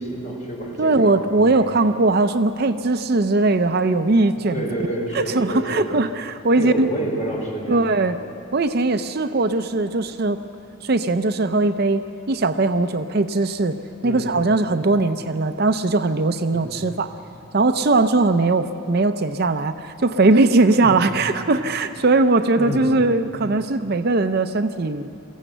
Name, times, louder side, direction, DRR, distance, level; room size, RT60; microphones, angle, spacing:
voice 1, 0.0-1.5 4.5-5.9 6.6-7.8 14.0-14.3 16.5-16.7 20.8-21.0 22.6-22.9, right 1 dB, 35° left, -2 dB, 4.1 m, -29 dB
voice 2, 0.8-4.6 5.1-6.9 7.7-8.2 8.5-10.4 10.8-13.8 14.0-17.1 17.5-25.1, right 3 dB, 50° right, 9 dB, 0.6 m, -20 dB
23.0 x 15.0 x 7.9 m, 2.9 s
head